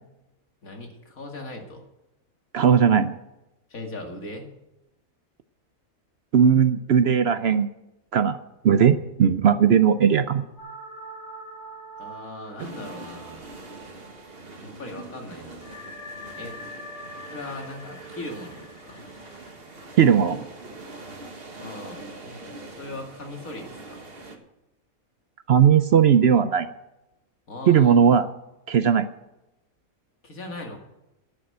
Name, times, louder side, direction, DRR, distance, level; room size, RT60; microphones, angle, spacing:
voice 1, 0.6-1.8 3.7-4.5 12.0-13.5 14.6-15.7 16.3-16.6 17.3-19.0 21.6-24.0 27.5-28.0 30.2-30.8, left 2 dB, 80° left, 2 dB, 2.6 m, -39 dB
voice 2, 2.5-3.2 6.3-7.7 8.1-8.4 8.6-10.4 20.0-20.4 25.5-26.7 27.7-28.3 28.7-29.1, right 7 dB, 60° right, 12 dB, 0.7 m, -18 dB
sound 1, 10.6-14.6 14.9-15.0 15.6-20.3, equal, 60° left, 6.8 m, -44 dB
sound 2, 12.6-24.4, right 2 dB, 45° right, 1.8 m, -43 dB
11.5 x 9.9 x 7.8 m, 0.94 s
omnidirectional pair, 1.4 m